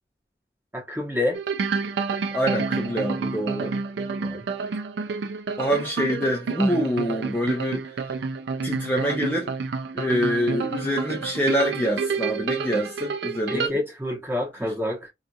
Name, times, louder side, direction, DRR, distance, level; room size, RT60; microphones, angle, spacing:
voice 1, 0.7-1.4 4.2-4.4 13.5-15.1, left 1 dB, 15° right, 1.0 m, -28 dB
sound 1, 1.3-13.7, right 5 dB, 80° right, 0.4 m, -29 dB
voice 2, 2.3-3.7 5.6-8.2 8.6-9.5 9.9-13.8 14.6-14.7, equal, 10° left, 0.5 m, -25 dB
2.8 x 2.5 x 2.3 m
head